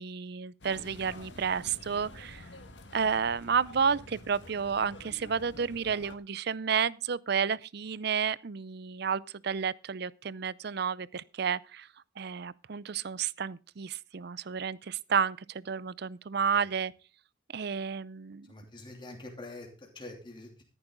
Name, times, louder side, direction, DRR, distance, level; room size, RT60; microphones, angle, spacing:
voice 1, 0.0-2.4 2.9-11.9 12.2-16.9 17.5-18.5, right 6 dB, 55° right, 0.5 m, -31 dB
sound 1, 0.6-6.2, left 1 dB, 65° left, 1.8 m, -49 dB
voice 2, 18.5-20.6, left 2 dB, 25° left, 2.9 m, -45 dB
13.5 x 11.0 x 3.9 m
head